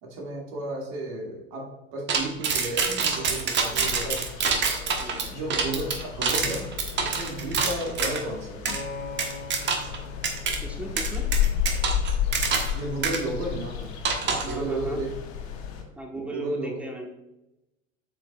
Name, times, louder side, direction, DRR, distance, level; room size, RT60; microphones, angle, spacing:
voice 1, 0.0-4.3 5.3-6.7 7.0-8.7 12.7-13.9 14.4-15.1 16.1-16.8, right 2 dB, 50° right, -2 dB, 2.4 m, -33 dB
sound 1, 2.1-8.2 8.7-8.8 9.2-10.0 10.2-10.6 11.0-12.8 13.0-13.2 14.0-14.6, right 5 dB, 25° right, 1.3 m, -26 dB
sound 2, 3.7-15.8, left 9 dB, 55° left, 1.7 m, -32 dB
Acoustic guitar, 8.7-12.9 13.8-13.9, left 4 dB, 70° left, 1.8 m, -42 dB
voice 2, 10.6-11.3 14.2-15.0 16.0-17.1, right 2 dB, 5° right, 1 dB, 1.4 m, -38 dB
8.3 x 6.7 x 2.4 m, 0.94 s
figure-of-eight pair, 85°, 40 cm